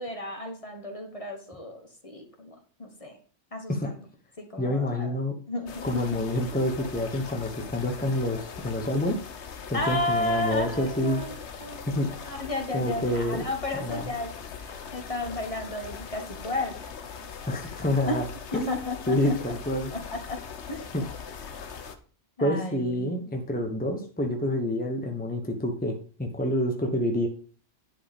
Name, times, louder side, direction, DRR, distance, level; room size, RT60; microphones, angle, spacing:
voice 1, 0.0-3.2 3.5-4.0 4.4-5.1 5.5-6.2 9.7-11.9 12.3-16.8 18.1-18.2 18.5-19.3 19.9-20.4 20.7-20.9 22.4-23.1, left 2 dB, 30° left, 4 dB, 1.5 m, -33 dB
voice 2, 4.6-5.4 5.8-9.2 9.7-11.2 11.9-12.1 12.7-13.4 13.8-14.0 17.5-18.2 18.5-18.7 19.1-19.9 20.9-21.1 22.4-27.3, left 1 dB, 10° left, 2 dB, 1.1 m, -27 dB
sound 1, 5.7-22.0, left 6 dB, 65° left, 1.2 m, -41 dB
10.5 x 4.9 x 5.3 m, 0.42 s
omnidirectional pair, 1.2 m